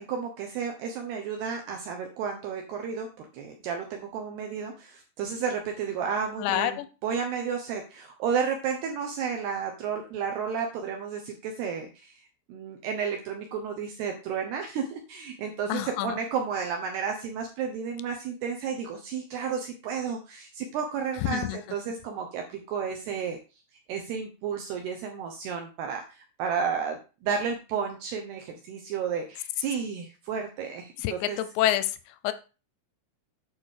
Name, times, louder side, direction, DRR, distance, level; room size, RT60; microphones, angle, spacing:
voice 1, 0.0-12.1 12.5-23.4 23.9-31.4, right 6 dB, 70° right, 3 dB, 2.7 m, -32 dB
voice 2, 6.4-6.9 15.7-16.1 21.2-21.6 31.0-32.0 32.2-32.3, left 13 dB, 80° left, 12 dB, 2.6 m, -27 dB
8.9 x 4.5 x 6.4 m, 0.32 s
omnidirectional pair, 5.6 m